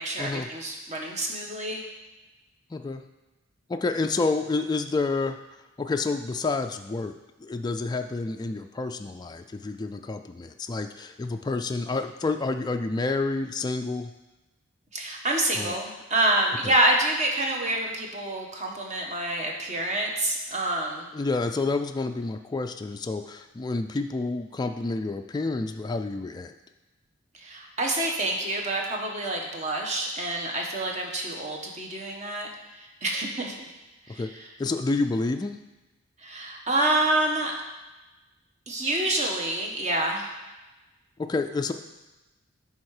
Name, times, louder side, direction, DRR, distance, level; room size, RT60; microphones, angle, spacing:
voice 1, 0.0-1.8 14.9-21.1 27.3-33.5 34.1-34.4 36.2-37.5 38.7-40.3, right 1 dB, 35° right, 0 dB, 1.2 m, -27 dB
voice 2, 2.7-3.0 3.7-5.4 5.8-7.1 7.4-14.1 15.6-15.8 16.6-16.7 21.1-26.5 34.2-34.3 34.6-35.6 41.2-41.7, left 3 dB, 20° left, 6 dB, 0.3 m, -29 dB
10.5 x 3.6 x 4.8 m, 1.1 s
head